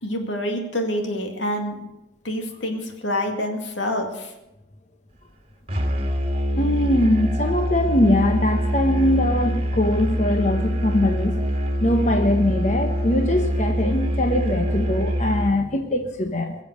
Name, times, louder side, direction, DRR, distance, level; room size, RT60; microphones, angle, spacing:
voice 1, 0.0-1.9 2.2-4.3, left 1 dB, 90° left, 4 dB, 2.2 m, -27 dB
Musical instrument, 5.7-15.6, equal, 30° right, 1.6 m, -24 dB
voice 2, 6.5-11.5 11.8-16.5, left 1 dB, 40° left, 6 dB, 0.9 m, -22 dB
21.5 x 7.4 x 6.5 m, 0.95 s
head